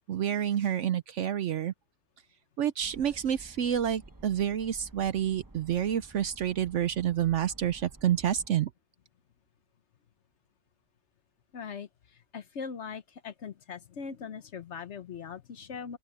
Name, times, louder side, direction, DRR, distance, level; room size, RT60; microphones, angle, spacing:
voice 1, 0.1-1.7 2.6-8.7, right 10 dB, 65° right, 0.8 m, -28 dB
sound 1, 2.8-8.5, right 2 dB, 15° right, 1.0 m, -52 dB
voice 2, 11.5-16.0, left 6 dB, 55° left, 1.0 m, -41 dB
open air
omnidirectional pair, 1.6 m